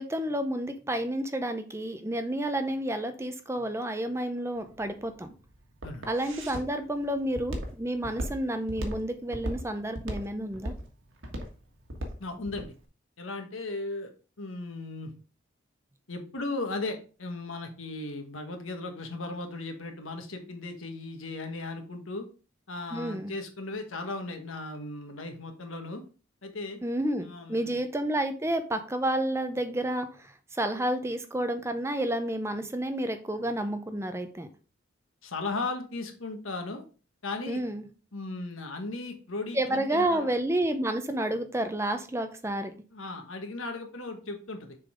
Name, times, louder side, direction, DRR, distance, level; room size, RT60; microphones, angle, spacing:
voice 1, 0.0-5.3 6.1-10.7 22.9-23.3 26.8-34.5 37.5-37.9 39.5-42.7, right 1 dB, 15° right, 8 dB, 0.6 m, -30 dB
Walk footsteps, 4.6-12.7, equal, 80° right, 1.5 m, -37 dB
voice 2, 12.2-12.7 13.2-14.1 14.4-15.1 16.1-22.3 22.7-26.0 26.4-26.8 27.2-27.8 35.2-36.8 37.2-37.6 38.1-40.3 42.9-44.8, left 2 dB, 85° left, 5 dB, 1.4 m, -36 dB
6.7 x 3.9 x 4.9 m, 0.37 s
head